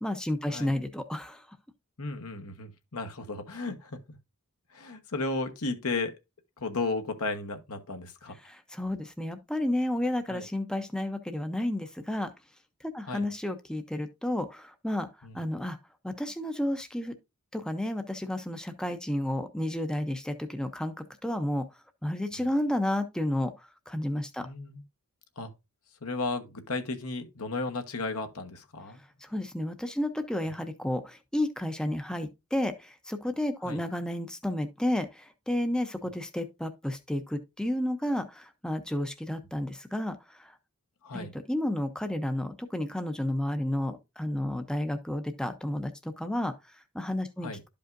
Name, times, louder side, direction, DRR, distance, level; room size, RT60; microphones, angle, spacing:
voice 1, 0.0-1.4 8.4-12.3 12.8-15.1 15.3-15.8 16.0-17.1 17.5-21.7 22.0-24.5 29.2-40.5 41.1-46.5 46.9-47.5, left 1 dB, 5° left, 0.6 m, -31 dB
voice 2, 2.0-3.9 4.7-6.1 6.6-8.4 10.3-10.5 13.1-13.3 15.2-15.3 24.4-24.8 25.4-25.5 26.0-29.0 33.6-33.8 41.0-41.3 47.4-47.6, left 3 dB, 75° left, 1.1 m, -34 dB
12.0 x 5.2 x 2.5 m
head